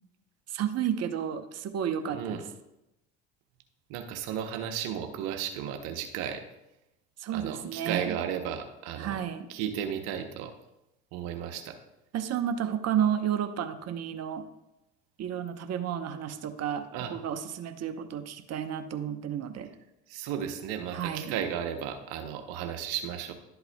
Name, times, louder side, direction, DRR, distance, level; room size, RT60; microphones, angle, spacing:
voice 1, 0.5-2.4 7.2-8.1 9.0-9.5 12.1-14.4 15.2-19.7 20.9-21.3, right 9 dB, 50° right, 7 dB, 0.8 m, -31 dB
voice 2, 2.1-2.4 3.9-6.4 7.3-9.2 9.5-10.5 11.1-11.8 16.9-17.1 20.1-23.3, right 9 dB, 80° right, 6 dB, 0.8 m, -34 dB
11.5 x 8.0 x 2.2 m, 0.90 s
hypercardioid pair, 65°, 33 cm